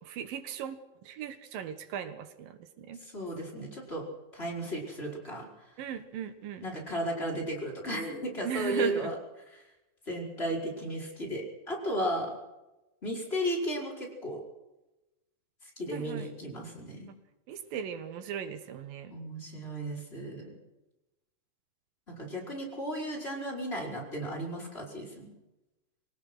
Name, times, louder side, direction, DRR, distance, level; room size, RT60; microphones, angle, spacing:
voice 1, 0.0-3.0 5.8-6.7 8.4-9.1 15.9-16.3 17.5-19.1, right 8 dB, 90° right, 10 dB, 3.2 m, -37 dB
voice 2, 3.1-4.0 4.3-5.5 6.6-9.1 10.1-12.3 13.0-14.4 15.8-17.1 19.1-20.5 22.1-25.3, equal, 15° left, -2 dB, 5.1 m, -34 dB
22.5 x 18.5 x 6.3 m, 1.0 s
omnidirectional pair, 3.9 m